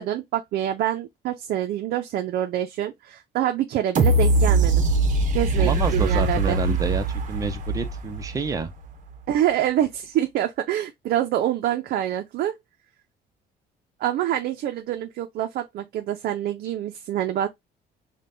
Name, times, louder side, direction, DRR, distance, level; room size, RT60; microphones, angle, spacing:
voice 1, 0.0-4.9 5.3-6.6 9.3-12.5 14.0-17.5, right 12 dB, 65° right, 0.5 m, -26 dB
sound 1, 3.9-8.8 9.3-9.4, right 2 dB, 50° right, 0.8 m, -22 dB
voice 2, 5.6-8.7, right 4 dB, 20° right, 0.7 m, -28 dB
5.1 x 2.2 x 2.5 m
cardioid pair, 110°, 17 cm